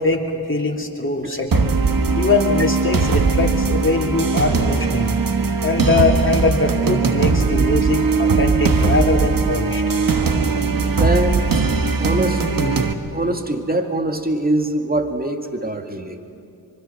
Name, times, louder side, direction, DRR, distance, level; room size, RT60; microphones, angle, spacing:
voice 1, 0.0-1.7 2.1-5.2 5.6-9.8, left 3 dB, 30° left, 1 dB, 3.0 m, -22 dB
sound 1, 1.5-12.9, right 4 dB, 55° right, 1.5 m, -19 dB
voice 2, 10.8-11.7 12.0-16.3, right 1 dB, 20° right, 5 dB, 2.2 m, -23 dB
24.5 x 23.0 x 5.8 m, 2.5 s
cardioid pair, 45°, 40 cm